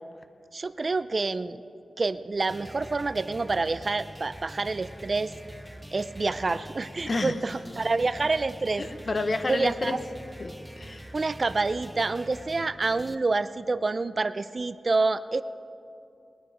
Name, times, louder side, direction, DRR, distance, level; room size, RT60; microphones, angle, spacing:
voice 1, 0.5-1.6 2.0-5.3 5.9-8.8 9.5-10.0 11.1-15.4, right 3 dB, 45° right, 14 dB, 0.4 m, -27 dB
sound 1, 2.5-13.1, equal, 5° right, 0.6 m, -45 dB
voice 2, 7.0-7.3 8.8-10.0 10.4-11.0, left 2 dB, 45° left, 9 dB, 0.9 m, -29 dB
20.5 x 9.9 x 5.0 m, 2.6 s
wide cardioid pair, 80°, 0 cm